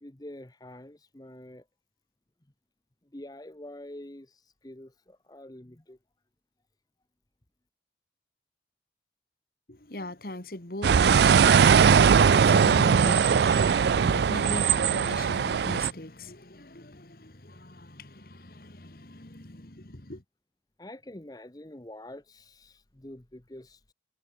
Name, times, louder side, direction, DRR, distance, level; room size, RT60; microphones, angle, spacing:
voice 1, 0.0-1.7 3.1-6.0 20.8-23.9, left 1 dB, 20° left, 1.0 m, -46 dB
voice 2, 9.7-20.2, left 1 dB, 55° left, 2.3 m, -40 dB
sound 1, 10.8-15.9, right 6 dB, 70° right, 0.4 m, -20 dB
head